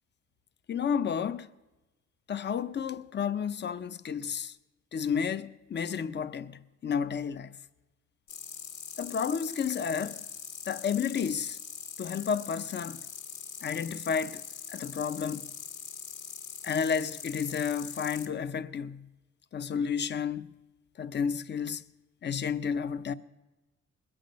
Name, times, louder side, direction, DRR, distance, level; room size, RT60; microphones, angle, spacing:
voice 1, 0.7-1.5 2.3-4.5 4.9-7.5 9.0-10.2 10.7-11.6 12.0-13.0 13.6-14.4 14.7-15.5 16.6-19.1 19.5-20.5 21.0-21.8 22.2-23.1, left 7 dB, 35° left, 0.6 m, -31 dB
sound 1, 8.3-18.3, left 7 dB, 80° left, 1.7 m, -42 dB
21.0 x 8.7 x 5.2 m
cardioid pair, 90°, 30 cm